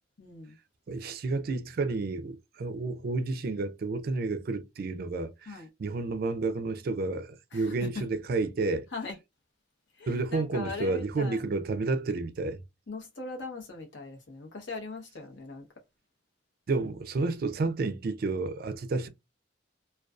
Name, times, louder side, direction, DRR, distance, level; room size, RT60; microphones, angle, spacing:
voice 1, 0.2-0.6 5.5-5.7 7.5-8.1 8.9-9.1 10.0-11.4 12.9-15.6, left 3 dB, 75° left, 0.9 m, -40 dB
voice 2, 0.9-8.9 10.1-12.6 16.7-19.1, right 3 dB, 50° right, 0.3 m, -31 dB
2.4 x 2.2 x 2.3 m
head